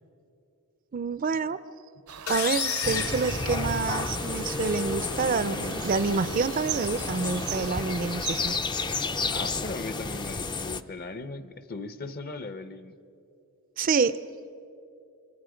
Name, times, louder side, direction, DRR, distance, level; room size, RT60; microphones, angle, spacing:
voice 1, 0.9-1.6 2.3-8.6 13.8-14.2, right 5 dB, 40° right, 15 dB, 0.5 m, -27 dB
sound 1, 2.1-8.5, right 10 dB, 80° right, 0.8 m, -40 dB
sound 2, 2.3-4.2, left 6 dB, 75° left, 1.7 m, -31 dB
sound 3, 2.8-10.8, left 3 dB, 20° left, 0.5 m, -31 dB
voice 2, 9.3-12.9, left 3 dB, 45° left, 11 dB, 0.9 m, -38 dB
27.5 x 22.5 x 5.1 m, 2.7 s
head